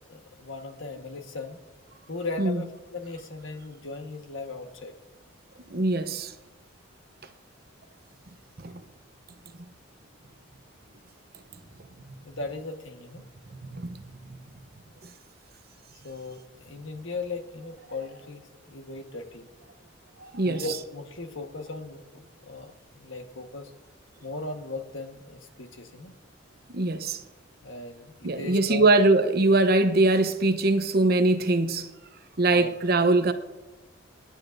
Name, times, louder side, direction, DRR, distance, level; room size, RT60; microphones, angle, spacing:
voice 1, 0.1-1.6 2.1-4.9 12.2-13.3 16.0-19.5 20.4-23.7 24.2-26.2 27.6-28.9 32.5-32.7, left 3 dB, 65° left, 1.4 m, -38 dB
voice 2, 5.7-6.3 8.6-8.7 13.7-14.0 20.2-20.6 26.7-27.2 28.2-31.9 32.4-33.3, right 2 dB, 50° right, 0.8 m, -22 dB
28.0 x 10.0 x 2.6 m
head